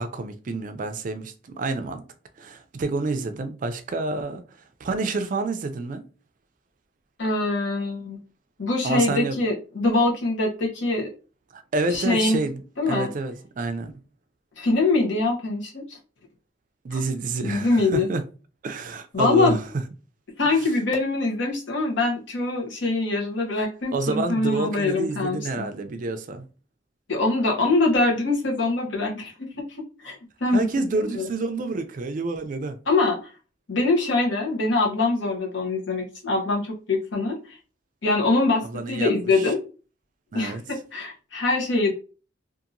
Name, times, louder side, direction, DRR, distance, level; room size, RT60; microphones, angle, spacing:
voice 1, 0.0-2.0 2.4-4.4 4.8-6.0 8.8-9.4 11.5-13.9 16.8-18.2 18.6-19.6 20.6-20.7 23.9-26.5 30.5-32.8 38.6-39.5 40.3-40.6, right 3 dB, 45° right, 0.3 m, -28 dB
voice 2, 7.2-8.2 8.6-11.1 11.9-12.4 12.8-13.1 14.6-16.0 16.9-17.0 17.4-18.1 19.1-19.6 20.4-25.7 27.1-29.5 30.0-30.6 31.0-31.3 32.9-33.3 33.7-37.6 38.0-39.6 40.3-41.9, left 2 dB, 75° left, 1.0 m, -23 dB
2.8 x 2.5 x 2.5 m
head